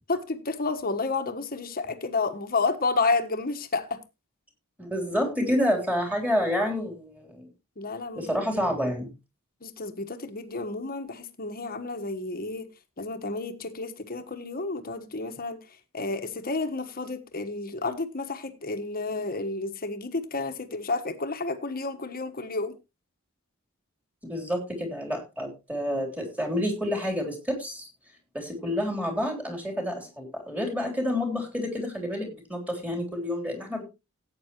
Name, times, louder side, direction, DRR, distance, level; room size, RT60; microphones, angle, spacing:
voice 1, 0.1-4.0 7.8-8.4 9.6-12.7 13.0-15.6 15.9-22.7, left 3 dB, 40° left, 1.3 m, -31 dB
voice 2, 4.8-7.5 8.2-9.1 24.2-27.9 28.3-33.8, equal, 5° right, 3.4 m, -29 dB
16.5 x 8.8 x 3.0 m
head